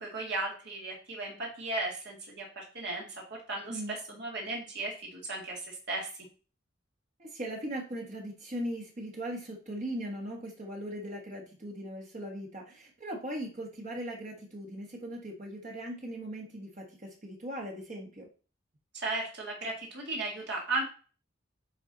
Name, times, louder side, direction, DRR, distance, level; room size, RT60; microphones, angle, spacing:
voice 1, 0.0-3.2 3.5-6.3 18.9-20.9, right 2 dB, 60° right, -2 dB, 1.8 m, -36 dB
voice 2, 7.2-18.3, right 1 dB, 40° right, 0 dB, 1.3 m, -39 dB
9.0 x 4.1 x 3.9 m, 0.38 s
head